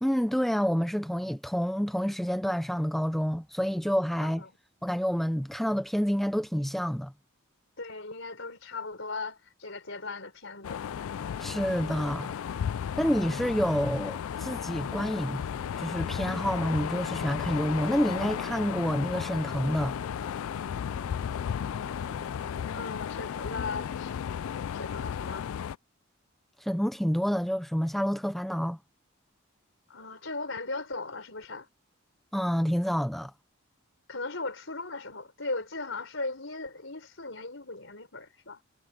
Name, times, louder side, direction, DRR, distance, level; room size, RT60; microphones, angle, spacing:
voice 1, 0.0-4.4 4.8-7.1 11.4-12.3 13.0-15.4 15.8-19.9 26.6-28.8 32.3-33.3, equal, ahead, 0.3 m, -28 dB
voice 2, 7.8-10.8 22.7-24.1 24.7-25.5 29.9-31.7 34.1-38.6, left 3 dB, 60° left, 4.7 m, -37 dB
sound 1, 10.6-25.8, left 8 dB, 75° left, 0.3 m, -34 dB
sound 2, 14.1-22.9, right 1 dB, 25° right, 1.6 m, -52 dB
head